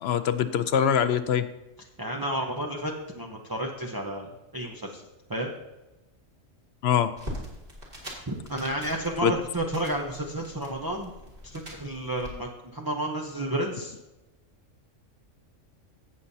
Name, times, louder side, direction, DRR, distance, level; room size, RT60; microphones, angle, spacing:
voice 1, 0.0-1.5 6.8-7.1 9.2-9.3, left 8 dB, 65° left, 12 dB, 0.7 m, -23 dB
voice 2, 2.0-5.0 5.3-5.5 8.3-11.1 11.4-14.0, right 1 dB, 20° right, 0 dB, 0.7 m, -31 dB
sound 1, 7.2-12.3, equal, 45° right, 2.8 m, -42 dB
16.5 x 7.2 x 2.8 m, 1.0 s
omnidirectional pair, 1.4 m